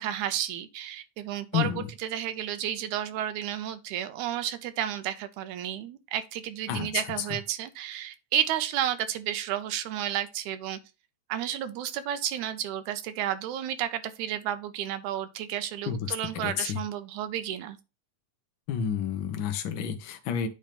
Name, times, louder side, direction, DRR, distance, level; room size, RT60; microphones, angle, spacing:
voice 1, 0.0-10.8 11.3-17.8, right 11 dB, 85° right, 2.1 m, -32 dB
voice 2, 1.5-1.9 6.7-7.3 15.9-16.8 18.7-20.5, left 8 dB, 60° left, 1.3 m, -30 dB
9.0 x 3.0 x 5.1 m
omnidirectional pair, 3.4 m